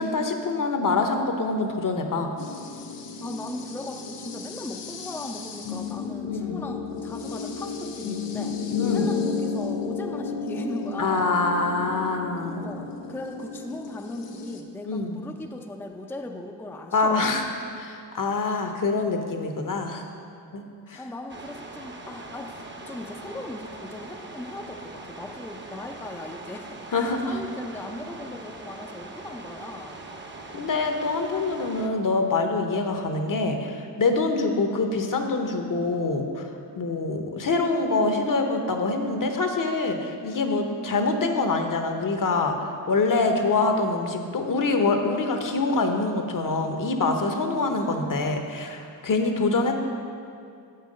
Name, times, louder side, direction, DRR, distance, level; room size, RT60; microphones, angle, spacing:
voice 1, 0.0-2.3 6.2-6.6 8.8-9.2 11.0-12.6 14.9-15.2 16.9-17.4 17.8-20.1 20.5-20.6 20.9-21.0 26.9-27.2 30.5-36.5 36.8-42.6 42.9-49.8, left 3 dB, 50° left, 5 dB, 0.9 m, -25 dB
sound 1, 2.4-14.6, left 5 dB, 75° left, 0.7 m, -33 dB
voice 2, 3.2-8.6 8.9-11.4 12.5-17.3 18.4-18.8 20.9-30.0 47.6-48.2, left 2 dB, 5° left, 2 dB, 0.5 m, -38 dB
sound 2, 21.3-31.9, right 2 dB, 25° right, 0.8 m, -41 dB
7.2 x 5.7 x 5.2 m, 2.5 s
supercardioid pair, 55°, 43 cm